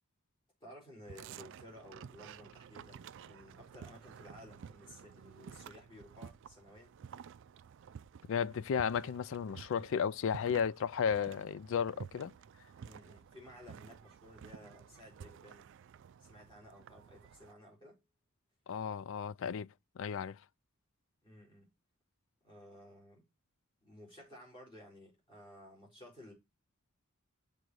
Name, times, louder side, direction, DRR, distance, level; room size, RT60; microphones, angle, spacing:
voice 1, 0.6-6.9 12.8-15.7 16.2-18.0 21.2-21.7 22.4-23.2 23.8-26.3, left 1 dB, 25° left, 4.2 m, -55 dB
sound 1, 1.1-17.5, right 7 dB, 60° right, 0.3 m, -52 dB
voice 2, 8.3-12.3 18.7-19.7 20.0-20.4, left 7 dB, 65° left, 0.4 m, -34 dB
6.6 x 4.0 x 6.1 m
head